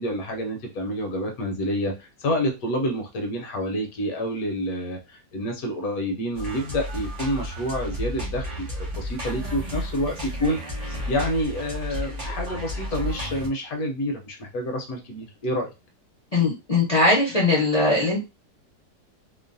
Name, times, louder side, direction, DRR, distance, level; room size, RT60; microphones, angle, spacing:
voice 1, 0.0-10.6 11.1-15.7, equal, 65° left, 2 dB, 1.0 m, -28 dB
sound 1, 6.3-13.5, left 1 dB, 50° right, 0.4 m, -32 dB
voice 2, 16.3-18.2, left 2 dB, 40° left, -3 dB, 0.5 m, -20 dB
3.0 x 2.0 x 2.5 m, 0.26 s
omnidirectional pair, 1.8 m